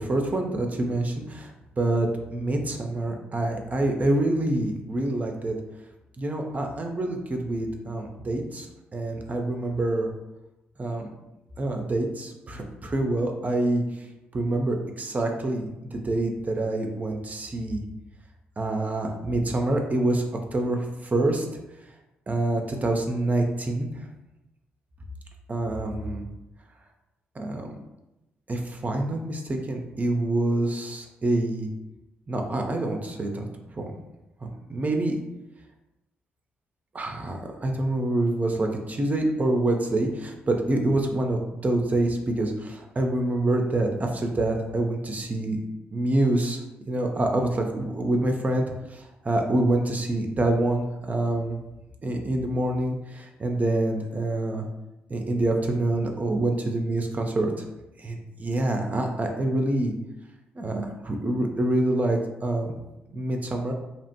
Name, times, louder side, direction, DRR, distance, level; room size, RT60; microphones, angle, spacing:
voice 1, 0.0-1.5 1.8-5.5 6.2-8.7 8.9-10.1 10.8-11.1 11.6-13.8 14.3-17.8 18.6-20.2 20.5-21.5 22.3-24.1 25.5-26.3 27.4-27.7 28.5-31.7 32.3-33.5 33.8-33.9 34.4-35.1 36.9-45.6 45.9-46.6 46.9-48.6 48.9-51.6 52.0-54.6 55.1-57.5 58.0-59.9 60.6-62.7 63.1-63.7, right 2 dB, 35° right, 3 dB, 0.5 m, -26 dB
2.8 x 2.0 x 2.8 m, 0.96 s
hypercardioid pair, 45°, 5 cm